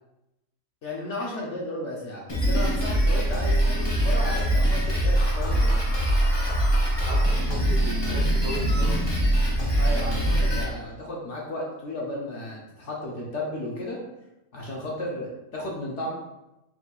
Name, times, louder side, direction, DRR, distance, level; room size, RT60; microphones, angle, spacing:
voice 1, 0.8-5.8 9.8-14.0 14.5-16.1, left 1 dB, 55° left, -3 dB, 1.0 m, -34 dB
Drum kit, 2.3-10.6, right 1 dB, 20° left, 0.7 m, -23 dB
voice 2, 7.0-9.2, right 1 dB, 65° right, -3 dB, 1.5 m, -36 dB
4.5 x 4.0 x 2.4 m, 0.93 s
omnidirectional pair, 1.6 m